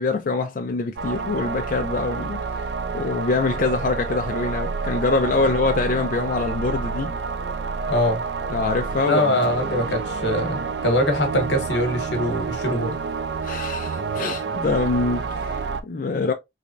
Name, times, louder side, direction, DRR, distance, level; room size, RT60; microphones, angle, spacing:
voice 1, 0.0-2.7 2.9-7.1 8.5-9.2 13.4-16.3, left 3 dB, 50° left, 0.4 m, -24 dB
sound 1, 1.0-15.8, right 5 dB, 70° right, 0.4 m, -28 dB
voice 2, 7.9-8.2 9.1-13.0, left 1 dB, 85° left, 1.1 m, -23 dB
3.3 x 3.1 x 2.5 m
head